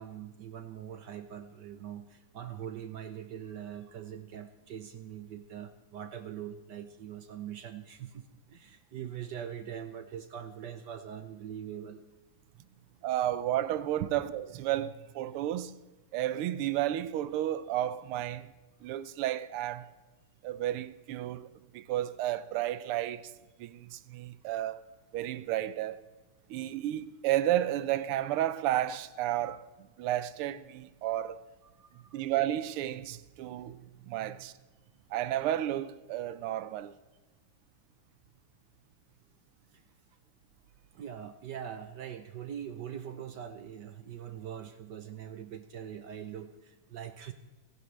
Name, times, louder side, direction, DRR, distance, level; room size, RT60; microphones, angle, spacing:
voice 1, 0.0-12.1 14.0-14.1 31.8-32.2 39.7-39.8 40.9-47.3, right 9 dB, 65° right, 1.2 m, -42 dB
voice 2, 13.0-15.8 16.1-18.5 18.8-19.9 20.4-23.3 23.6-24.9 25.1-26.0 26.5-29.7 30.0-31.4 31.9-34.5 35.1-36.9, right 13 dB, 85° right, 1.6 m, -32 dB
30.0 x 11.0 x 3.2 m
omnidirectional pair, 2.4 m